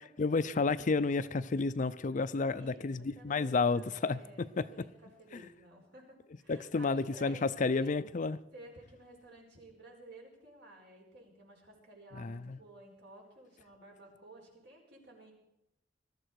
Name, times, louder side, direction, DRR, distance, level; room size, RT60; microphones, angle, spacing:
voice 1, 0.2-4.9 5.3-5.4 6.5-8.4 12.2-12.6, left 4 dB, 45° left, 0.5 m, -31 dB
voice 2, 2.4-7.9 8.5-15.3, right 1 dB, 65° right, 5.0 m, -54 dB
21.0 x 13.5 x 4.7 m
head